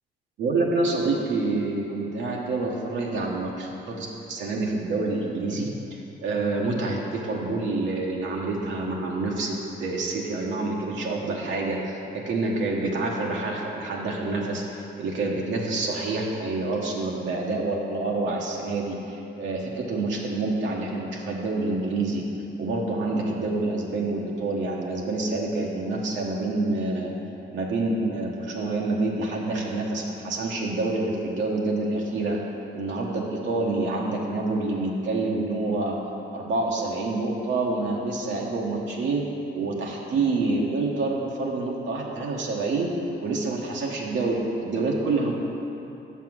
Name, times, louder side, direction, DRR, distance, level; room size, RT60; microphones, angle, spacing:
voice 1, 0.4-5.7 6.2-19.0 19.4-22.2 22.6-27.1 27.5-32.4 32.7-36.0 36.3-39.2 39.5-42.9 43.2-45.3, right 3 dB, 75° right, -2 dB, 1.1 m, -27 dB
6.8 x 5.7 x 6.1 m, 2.9 s
cardioid pair, 90°, 20 cm